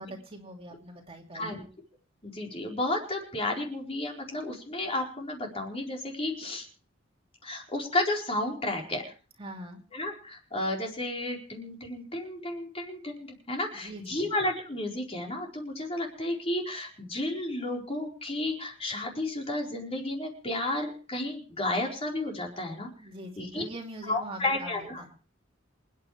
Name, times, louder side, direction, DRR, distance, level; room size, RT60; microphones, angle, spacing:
voice 1, 0.0-1.6 9.4-9.8 13.8-14.4 23.0-25.1, right 1 dB, 30° right, 1 dB, 2.7 m, -43 dB
voice 2, 1.3-1.6 2.2-6.7 7.4-9.0 9.9-22.9 23.4-23.6 24.1-25.1, left 1 dB, 30° left, 0 dB, 4.5 m, -32 dB
27.5 x 9.4 x 3.3 m, 0.39 s
head